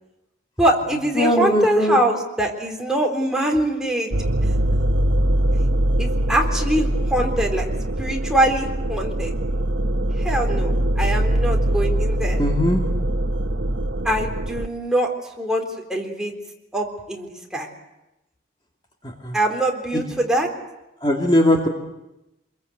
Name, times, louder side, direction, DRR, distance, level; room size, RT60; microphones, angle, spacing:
voice 1, 0.6-4.1 6.0-7.7 8.0-9.3 10.2-12.4 14.0-15.1 15.4-15.6 15.9-16.3 16.7-17.7 19.3-20.5, right 1 dB, 5° right, 0 dB, 3.9 m, -23 dB
voice 2, 1.2-2.0 12.4-12.8 19.0-19.4 19.9-20.0 21.0-21.7, equal, 25° left, 0 dB, 2.5 m, -19 dB
sound 1, 4.1-14.7, right 1 dB, 80° right, 1.1 m, -22 dB
26.5 x 22.5 x 8.1 m, 0.95 s
head